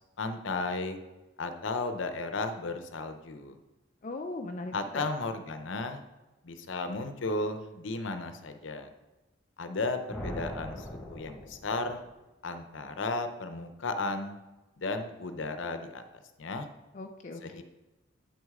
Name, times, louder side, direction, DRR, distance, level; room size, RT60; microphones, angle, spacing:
voice 1, 0.2-1.0 1.4-3.6 4.7-6.0 6.4-8.9 9.6-12.0 12.4-14.4 14.8-16.7 17.4-17.6, left 3 dB, 70° left, 8 dB, 0.7 m, -34 dB
voice 2, 4.0-5.1 16.9-17.6, left 2 dB, 40° left, 4 dB, 0.4 m, -39 dB
sound 1, 10.1-12.1, left 1 dB, 5° left, 1.8 m, -40 dB
8.3 x 6.3 x 3.6 m, 1.1 s
head